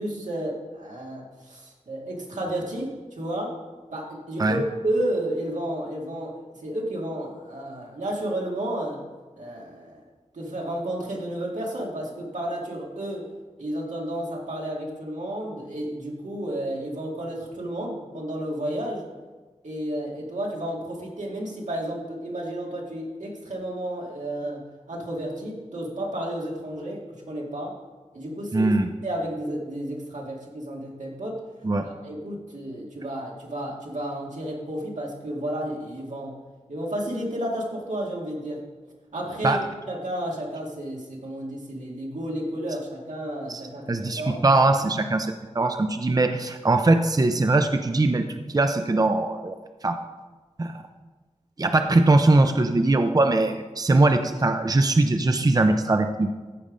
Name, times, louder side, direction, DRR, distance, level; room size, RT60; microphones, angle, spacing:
voice 1, 0.0-3.5 3.9-9.0 9.3-10.0 10.3-13.3 13.6-19.0 19.6-27.7 28.1-28.7 29.0-31.4 31.8-36.3 36.7-38.6 39.1-39.6 39.9-44.4, right 1 dB, 90° right, -2 dB, 2.2 m, -32 dB
voice 2, 28.5-28.9 31.6-31.8 39.4-39.6 43.5-43.6 43.9-49.5 49.8-50.0 50.6-50.7 51.6-56.3, right 2 dB, 30° right, 7 dB, 0.6 m, -21 dB
14.5 x 5.4 x 5.0 m, 1.3 s
wide cardioid pair, 75°, 12 cm